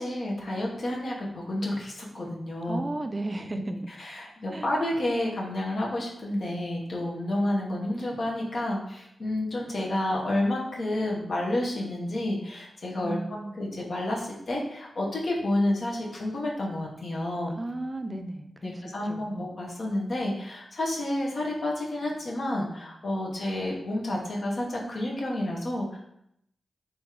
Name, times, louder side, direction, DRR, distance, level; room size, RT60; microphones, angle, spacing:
voice 1, 0.0-2.8 3.4-13.2 13.5-17.6 18.1-26.0, left 1 dB, 65° left, -2 dB, 1.1 m, -30 dB
voice 2, 2.7-3.6 4.5-4.7 13.0-13.6 17.6-18.8 19.1-19.5, right 2 dB, 35° right, 7 dB, 0.4 m, -34 dB
3.4 x 2.9 x 3.7 m, 0.77 s
cardioid pair, 45°, 0 cm